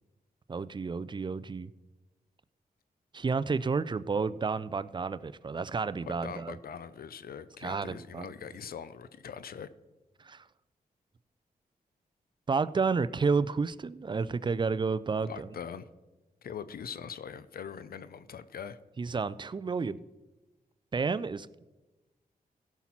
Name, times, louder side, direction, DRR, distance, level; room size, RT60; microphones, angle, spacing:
voice 1, 0.5-1.7 3.1-6.5 7.6-8.3 10.2-10.4 12.5-15.5 19.0-20.0 20.9-21.7, right 4 dB, 30° right, 16 dB, 0.4 m, -31 dB
voice 2, 6.0-9.7 15.3-15.9 16.4-18.8, left 7 dB, 70° left, 15 dB, 0.6 m, -42 dB
15.5 x 5.9 x 4.3 m, 1.1 s
cardioid pair, 65°, 16 cm